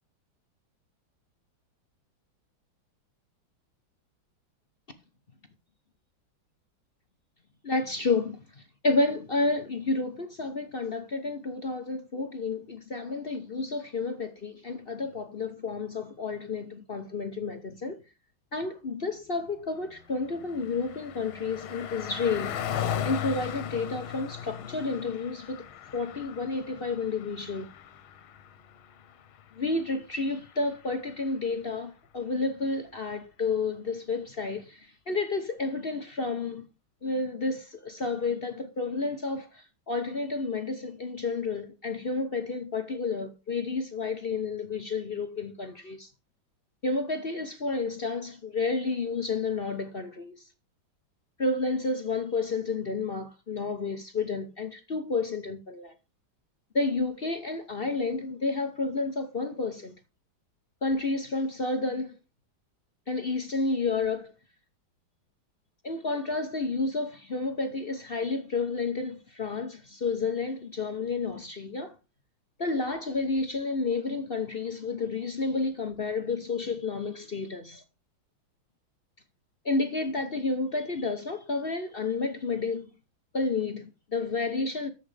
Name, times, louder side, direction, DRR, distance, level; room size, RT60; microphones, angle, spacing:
voice 1, 7.6-8.4 8.8-18.0 18.5-22.5 23.0-25.7 25.9-27.7 29.6-36.6 37.0-46.1 46.8-50.4 51.4-55.9 56.7-59.9 60.8-62.2 63.1-64.3 65.8-71.9 72.6-77.8 79.6-82.9 83.3-84.9, left 3 dB, 40° left, 0.8 m, -30 dB
Car passing by, 19.7-31.5, left 9 dB, 85° left, 1.8 m, -38 dB
10.5 x 7.8 x 3.4 m
omnidirectional pair, 2.2 m